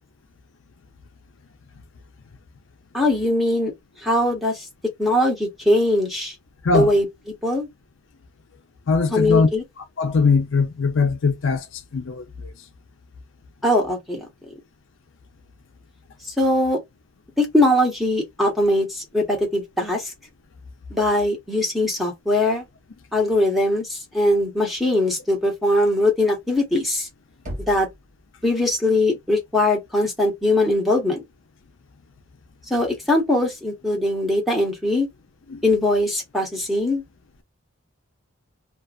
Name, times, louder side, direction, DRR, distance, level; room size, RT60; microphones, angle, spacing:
voice 1, 2.9-3.7 4.0-4.6 5.0-6.3 6.7-7.1 7.4-7.7 9.1-9.6 13.6-14.3 16.4-16.8 17.4-20.1 20.9-22.6 23.1-27.1 27.7-27.9 28.4-31.2 32.7-35.1 35.6-37.0, left 1 dB, ahead, 1.0 m, -21 dB
voice 2, 8.9-9.5 9.8-11.7 11.9-12.3 35.5-35.6, left 4 dB, 65° left, 0.5 m, -20 dB
Knock, 27.4-28.4, equal, 40° right, 1.2 m, -36 dB
2.5 x 2.3 x 2.4 m
head